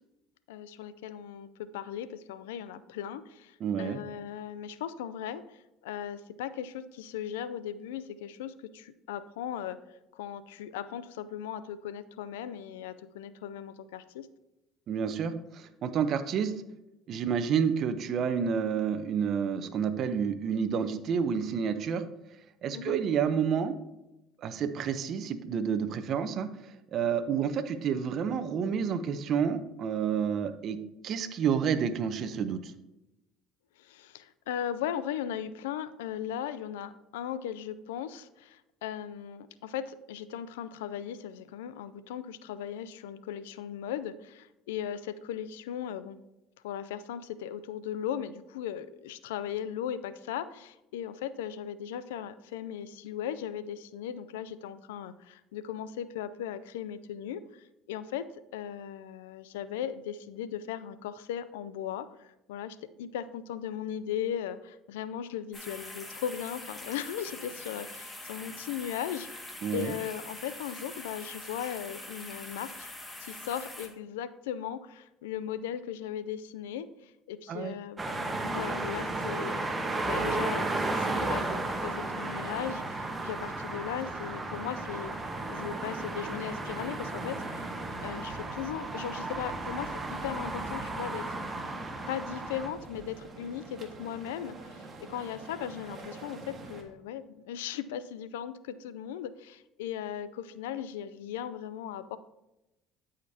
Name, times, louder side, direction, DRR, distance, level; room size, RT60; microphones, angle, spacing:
voice 1, 0.5-9.8 10.1-14.3 22.7-23.0 33.8-46.2 46.6-58.3 58.5-72.9 73.2-78.0 78.4-79.6 80.0-85.1 85.5-87.7 88.0-89.9 90.2-91.4 92.1-102.2, left 9 dB, 90° left, 15 dB, 0.4 m, -38 dB
voice 2, 3.6-4.0 14.9-16.5 17.1-22.0 22.6-23.8 24.4-26.5 26.9-30.8 31.0-32.7 69.6-69.9 77.5-77.7, right 7 dB, 55° right, 11 dB, 0.7 m, -29 dB
sound 1, 65.5-73.9, left 2 dB, 20° left, 1.8 m, -44 dB
sound 2, 78.0-92.7, right 2 dB, 20° right, 1.2 m, -34 dB
sound 3, 82.4-96.8, right 2 dB, 40° right, 1.6 m, -46 dB
13.0 x 5.1 x 2.8 m, 0.93 s
supercardioid pair, 80°, 0 cm